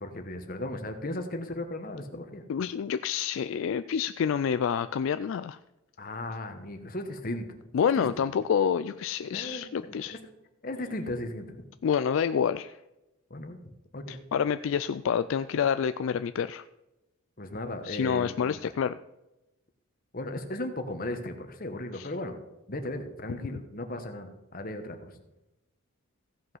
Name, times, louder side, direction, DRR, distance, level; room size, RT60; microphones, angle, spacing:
voice 1, 0.0-2.4 6.0-7.5 7.8-8.1 9.3-10.2 10.6-11.6 13.3-14.2 17.4-18.6 20.1-22.3 22.7-25.2, left 1 dB, 40° left, 6 dB, 1.2 m, -36 dB
voice 2, 2.5-5.6 7.7-10.2 11.8-12.8 14.1-16.6 17.9-18.9 21.9-22.1, left 7 dB, 65° left, 12 dB, 0.3 m, -28 dB
15.5 x 5.5 x 5.5 m, 0.96 s
head